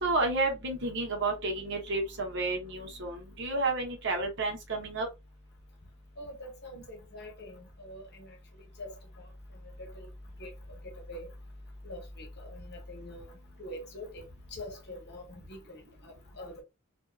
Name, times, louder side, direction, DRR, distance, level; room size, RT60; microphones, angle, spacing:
voice 1, 0.0-5.1, right 2 dB, 55° right, 0.8 m, -31 dB
voice 2, 6.2-8.3 8.8-8.9 9.8-10.1 10.4-10.5 11.1-11.3 11.8-13.2 13.6-14.3 14.5-16.6, left 1 dB, 50° left, 0.9 m, -44 dB
2.6 x 2.6 x 2.2 m
head